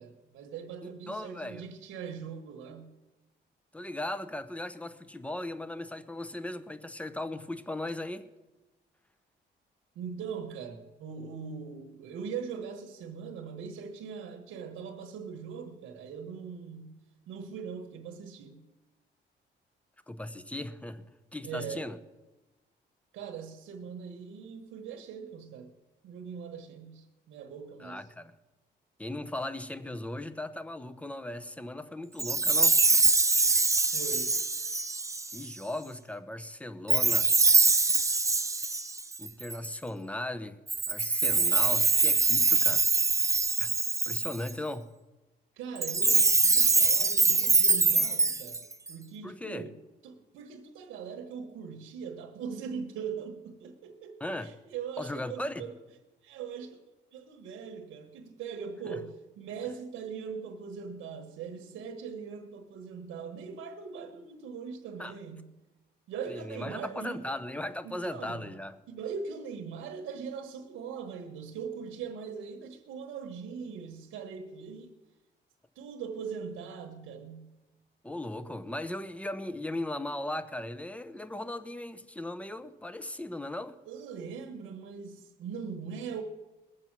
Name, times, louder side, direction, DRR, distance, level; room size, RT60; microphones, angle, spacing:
voice 1, 0.0-2.9 9.9-17.0 17.3-18.6 21.4-21.9 23.1-25.7 26.0-28.1 33.9-34.3 45.6-55.8 56.2-56.8 57.1-65.5 66.1-67.2 67.8-68.5 68.9-74.9 75.7-77.5 83.9-86.2, right 6 dB, 90° right, 1.3 m, -41 dB
voice 2, 0.8-1.6 3.7-8.3 20.1-21.0 21.3-22.0 27.8-28.3 29.0-32.8 35.3-37.3 39.2-40.6 40.9-42.9 43.6-43.7 44.1-44.9 49.2-49.7 54.2-54.5 55.0-55.6 58.9-59.0 65.0-65.1 66.3-68.8 78.0-83.8, left 1 dB, 5° left, 0.9 m, -37 dB
Chime, 32.2-35.5 36.9-39.7 40.7-44.5 45.8-48.9, right 3 dB, 15° right, 0.6 m, -24 dB
20.5 x 7.7 x 6.1 m
cardioid pair, 90°, 20 cm